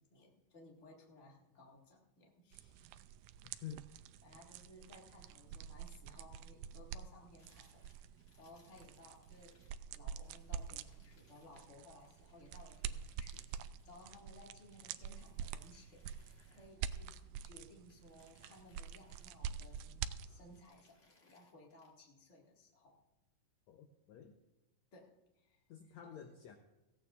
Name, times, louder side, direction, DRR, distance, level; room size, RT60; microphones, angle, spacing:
voice 1, 0.0-2.9 4.2-7.9 8.4-9.7 9.9-23.0 24.9-25.6 26.1-26.4, left 2 dB, 30° left, -1 dB, 1.6 m, -60 dB
sound 1, 2.5-20.6, right 8 dB, 85° right, 1.8 m, -47 dB
voice 2, 3.4-3.9 23.7-24.3 25.7-26.6, left 8 dB, 80° left, 5 dB, 1.6 m, -50 dB
sound 2, 7.4-9.8 10.1-17.4 17.7-20.1 20.4-21.9, left 3 dB, 50° left, 0.8 m, -72 dB
18.0 x 15.5 x 2.5 m, 1.0 s
omnidirectional pair, 4.0 m